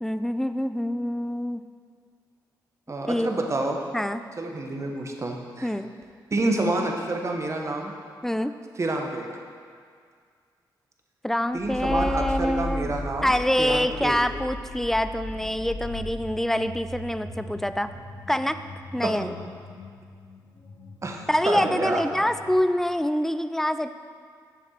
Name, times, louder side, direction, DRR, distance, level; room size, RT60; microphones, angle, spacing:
voice 1, 0.0-1.6 3.0-3.5 3.9-4.2 5.6-5.9 8.2-8.5 11.2-12.9 13.2-17.9 18.3-18.6 18.9-19.4 21.3-23.9, left 1 dB, 5° left, 11 dB, 0.3 m, -25 dB
voice 2, 2.9-3.8 4.4-5.7 6.3-7.9 8.8-9.3 11.5-14.2 19.0-19.3 21.0-22.0, right 2 dB, 35° right, 2 dB, 1.0 m, -28 dB
sound 1, 11.6-22.5, left 1 dB, 65° left, 1.1 m, -37 dB
6.8 x 6.3 x 4.3 m, 2.1 s
cardioid pair, 60°, 8 cm